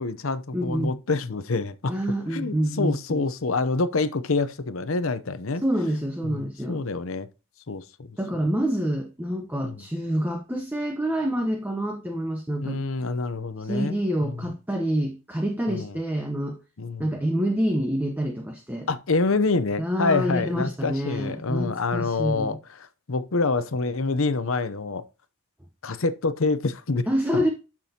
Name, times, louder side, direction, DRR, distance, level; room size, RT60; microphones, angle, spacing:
voice 1, 0.0-1.9 2.3-5.6 6.2-7.3 7.7-7.8 9.6-9.8 12.6-14.4 15.7-15.9 16.8-17.1 18.9-22.6 23.1-25.0 25.8-27.1 27.3-27.4, left 3 dB, 65° left, 0.7 m, -26 dB
voice 2, 0.5-0.9 1.9-3.2 5.6-6.8 8.2-12.8 13.6-16.6 17.0-18.9 19.8-22.6 27.1-27.5, equal, 10° right, 0.9 m, -27 dB
12.0 x 6.0 x 2.9 m
head